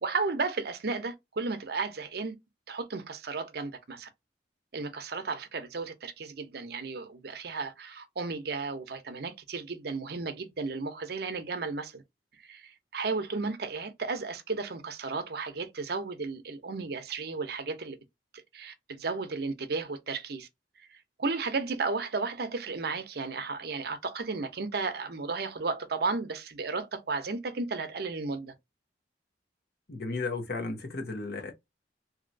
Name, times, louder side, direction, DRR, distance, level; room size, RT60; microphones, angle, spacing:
voice 1, 0.0-2.3 2.7-4.1 4.7-12.0 12.4-18.0 18.5-20.5 21.2-28.5, right 4 dB, 60° right, 0.7 m, -34 dB
voice 2, 29.9-31.5, left 3 dB, 60° left, 0.9 m, -34 dB
2.9 x 2.7 x 2.6 m
head